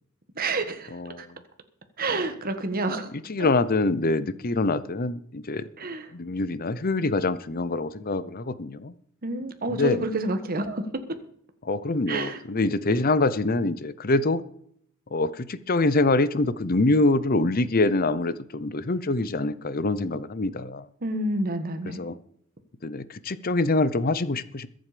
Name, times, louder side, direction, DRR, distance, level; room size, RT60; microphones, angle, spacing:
voice 1, 0.4-1.3 2.0-3.1 5.8-6.1 9.2-11.0 12.1-12.4 21.0-22.0, right 2 dB, 45° right, 8 dB, 1.5 m, -29 dB
voice 2, 0.9-1.3 2.1-2.2 3.3-5.7 6.1-8.9 9.7-10.0 11.6-14.4 15.1-20.9 21.8-22.2 22.8-24.7, left 2 dB, 45° left, 16 dB, 0.7 m, -25 dB
21.5 x 7.8 x 5.1 m, 0.67 s
head